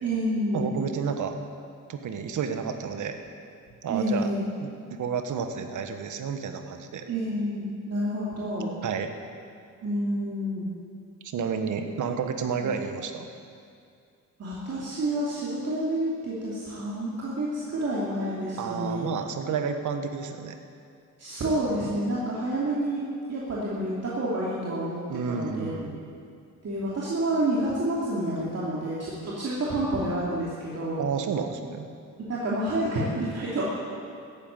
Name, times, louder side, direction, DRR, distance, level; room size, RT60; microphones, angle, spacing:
voice 1, 0.0-0.7 3.9-4.4 7.1-8.7 9.8-10.7 12.6-12.7 14.4-19.1 21.2-25.8 26.6-31.1 32.3-33.6, right 1 dB, 55° right, -7 dB, 2.8 m, -29 dB
voice 2, 0.5-1.4 1.9-3.2 3.8-4.3 4.6-7.0 8.8-9.1 11.2-13.3 18.6-20.6 25.1-26.1 31.0-31.9, right 6 dB, 70° right, 7 dB, 1.4 m, -31 dB
14.0 x 9.4 x 8.9 m, 2.4 s
cardioid pair, 90°, 31 cm